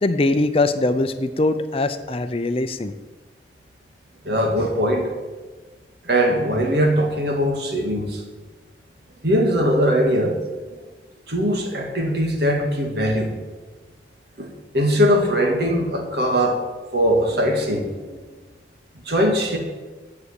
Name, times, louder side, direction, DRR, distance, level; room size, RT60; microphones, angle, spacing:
voice 1, 0.0-2.9, left 2 dB, 30° left, 10 dB, 0.5 m, -22 dB
voice 2, 4.2-5.1 6.0-8.2 9.2-10.4 11.3-13.3 14.4-14.5 14.7-16.6 16.9-18.2 19.1-19.6, equal, 65° right, 2 dB, 2.1 m, -20 dB
8.4 x 8.2 x 8.3 m, 1.3 s
head